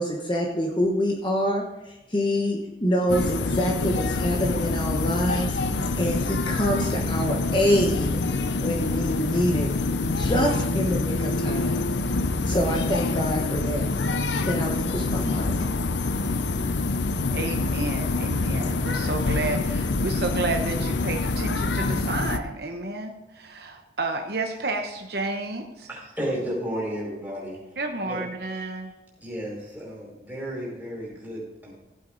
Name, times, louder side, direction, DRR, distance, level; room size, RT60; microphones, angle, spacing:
voice 1, 0.0-5.6 6.0-8.2 8.6-9.7 10.2-11.8 12.5-13.9 14.4-15.5, equal, 25° left, 0 dB, 1.1 m, -26 dB
sound 1, 3.1-22.4, left 3 dB, 70° left, 0.7 m, -26 dB
voice 2, 17.3-25.9 27.8-28.9, right 3 dB, 55° right, 4 dB, 0.9 m, -31 dB
voice 3, 25.9-27.6 28.0-28.2 29.2-31.7, equal, 10° right, -4 dB, 4.8 m, -33 dB
15.0 x 8.6 x 3.9 m, 0.99 s
head